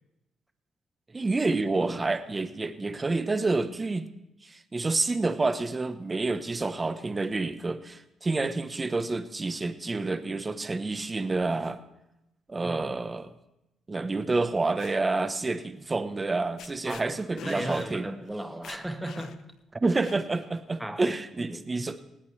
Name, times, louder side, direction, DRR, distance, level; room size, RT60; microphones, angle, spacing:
voice 1, 1.1-4.1 4.4-11.8 12.5-13.3 13.9-18.1 19.8-22.0, right 3 dB, 25° right, 11 dB, 1.0 m, -28 dB
voice 2, 12.6-13.1 16.8-17.1 17.4-19.4 20.8-21.9, right 1 dB, 5° right, 6 dB, 1.4 m, -36 dB
sound 1, 14.4-15.0 16.2-16.3 16.6-17.0 17.4-17.9 18.3-18.4 18.6-19.5 20.0-20.5, left 9 dB, 75° left, 0.8 m, -45 dB
18.5 x 17.5 x 3.3 m, 0.89 s
cardioid pair, 90°, 0 cm